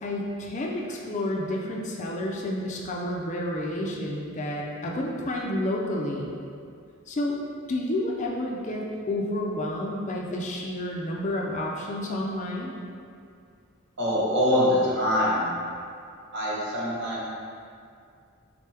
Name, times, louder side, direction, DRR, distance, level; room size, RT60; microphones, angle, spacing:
voice 1, 0.0-6.3 7.1-7.4 7.7-12.8, left 1 dB, 35° left, -1 dB, 0.4 m, -30 dB
voice 2, 14.0-15.4 16.3-17.3, left 1 dB, 55° right, -7 dB, 1.1 m, -24 dB
3.7 x 3.3 x 3.2 m, 2.3 s
head